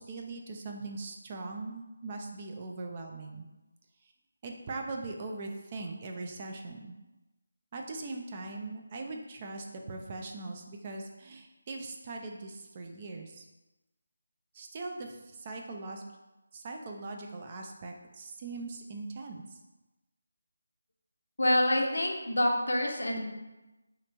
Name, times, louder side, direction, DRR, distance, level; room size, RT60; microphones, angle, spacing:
voice 1, 0.0-3.5 4.0-4.1 4.4-6.9 7.7-13.5 14.5-16.0 16.5-19.6, right 3 dB, 30° right, 2 dB, 0.4 m, -40 dB
voice 2, 21.4-23.3, left 1 dB, 75° left, 1 dB, 0.7 m, -27 dB
2.9 x 2.5 x 4.3 m, 1.0 s
figure-of-eight pair, 160°, 0 cm